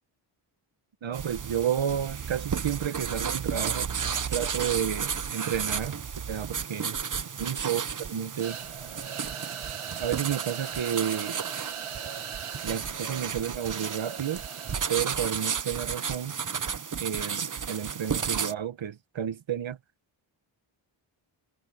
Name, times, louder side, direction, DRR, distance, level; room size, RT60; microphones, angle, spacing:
voice 1, 1.0-3.9 4.3-6.0 6.3-6.9 7.4-8.6 10.0-11.4 12.6-14.4 14.9-16.4 17.0-19.8, right 9 dB, 65° right, 1.3 m, -31 dB
sound 1, 1.1-18.5, right 6 dB, 40° right, 0.9 m, -33 dB
sound 2, 8.4-15.0, right 8 dB, 85° right, 2.2 m, -39 dB
wide cardioid pair, 115°, 49 cm